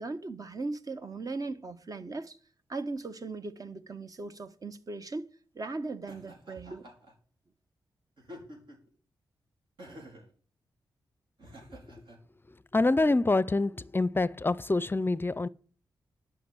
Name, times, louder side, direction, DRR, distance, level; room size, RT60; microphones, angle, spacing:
voice 1, 0.0-2.4 2.7-6.8, right 3 dB, 45° right, 1.2 m, -38 dB
Laughter, 6.1-7.1 8.2-8.9 9.8-10.3 11.4-12.2, equal, 70° right, 4.4 m, -49 dB
voice 2, 12.7-15.5, left 2 dB, 25° left, 0.5 m, -26 dB
11.5 x 6.0 x 7.8 m
cardioid pair, 50°, 8 cm